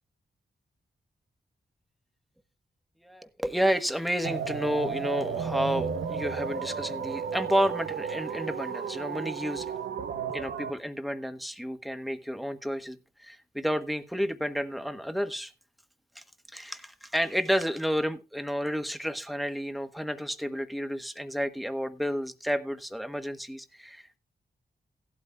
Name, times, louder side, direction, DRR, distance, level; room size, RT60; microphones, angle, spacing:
voice 1, 3.0-9.7 10.3-15.5 16.1-16.2 16.5-24.2, equal, ahead, 1.2 m, -31 dB
sound 1, 4.2-10.7, right 6 dB, 90° right, 1.1 m, -33 dB
16.5 x 12.0 x 2.3 m
cardioid pair, 75°, 17 cm